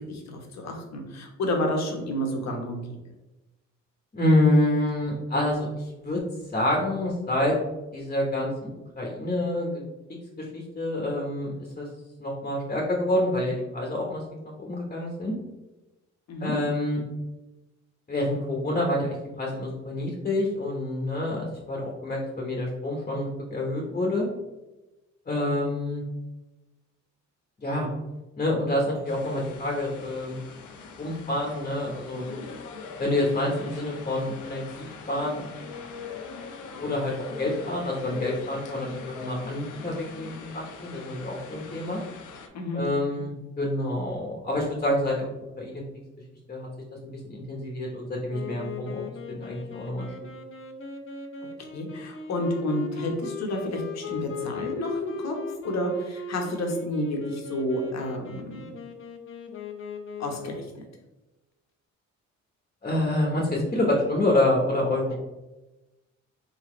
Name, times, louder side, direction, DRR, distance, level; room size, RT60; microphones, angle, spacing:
voice 1, 0.0-3.0 16.3-16.5 42.5-42.8 43.1-43.2 51.7-55.4 55.6-58.7 60.2-60.8, left 1 dB, 60° left, 2 dB, 1.2 m, -30 dB
voice 2, 4.1-6.2 6.5-7.5 7.9-8.5 9.0-9.8 10.1-11.9 12.2-14.2 14.6-15.3 16.4-17.0 18.1-24.3 25.3-26.0 27.6-27.9 28.4-30.4 31.0-32.2 33.0-35.5 36.8-42.0 42.7-45.3 45.6-45.8 46.5-47.0 47.2-49.0 49.3-50.1 62.8-65.2, left 1 dB, 25° left, -1 dB, 1.2 m, -27 dB
sound 1, 29.0-42.5, left 5 dB, 80° left, 0.8 m, -42 dB
Wind instrument woodwind instrument, 48.3-60.7, left 4 dB, 45° left, 0.7 m, -38 dB
4.1 x 3.9 x 3.2 m, 1.0 s
cardioid pair, 90°, 30 cm